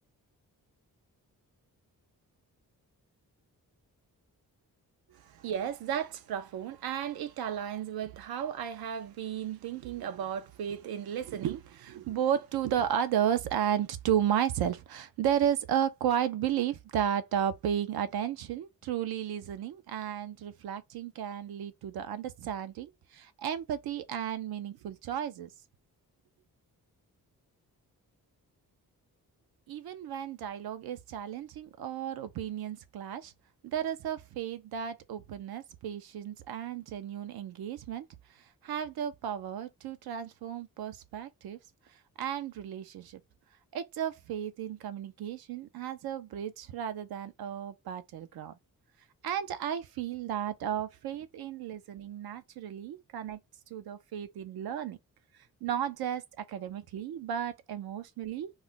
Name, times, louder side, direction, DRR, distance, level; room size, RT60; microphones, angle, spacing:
voice 1, 5.1-25.5 29.7-33.3 33.6-38.1 38.6-41.6 42.2-43.2 43.7-48.6 49.2-53.4 53.7-55.0 55.6-58.5, right 9 dB, 90° right, 0.5 m, -33 dB
2.3 x 2.1 x 3.8 m
cardioid pair, 70°, 36 cm